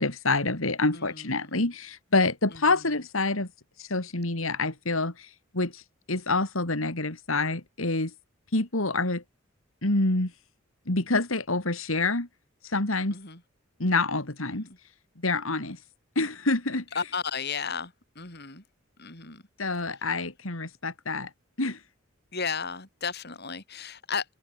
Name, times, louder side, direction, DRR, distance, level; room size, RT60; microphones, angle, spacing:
voice 1, 0.0-3.5 3.8-5.8 6.1-8.1 8.5-9.2 9.8-10.3 10.9-12.3 12.6-13.1 13.8-14.6 15.2-15.8 16.1-16.8 19.6-21.3 21.6-21.8, left 2 dB, 85° left, 3.4 m, -27 dB
voice 2, 0.9-1.6 2.5-2.6 13.1-13.4 14.6-14.8 16.9-18.6 19.0-19.4 22.3-24.2, left 5 dB, 50° left, 6.2 m, -34 dB
head